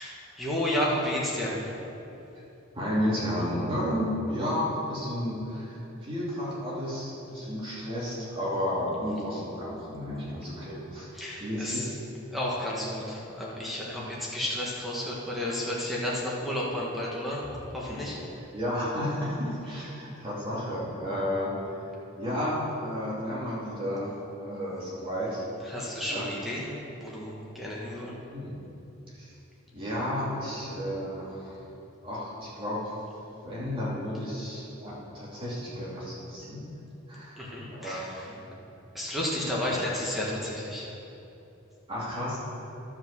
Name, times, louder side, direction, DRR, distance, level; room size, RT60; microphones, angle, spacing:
voice 1, 0.0-1.7 11.1-11.9 12.3-17.5 17.7-18.2 25.6-26.7 27.0-28.2 37.4-38.3 38.9-40.9, left 1 dB, ahead, -5 dB, 1.4 m, -32 dB
voice 2, 2.7-11.1 11.4-11.8 13.9-14.0 18.5-21.5 21.8-21.9 22.2-25.4 26.1-26.3 28.3-28.6 29.2-29.3 29.7-31.6 32.0-32.9 33.4-36.6 37.1-37.4 37.7-38.4 41.9-42.4, equal, 25° right, -8 dB, 2.7 m, -32 dB
11.5 x 5.5 x 6.9 m, 3.0 s
head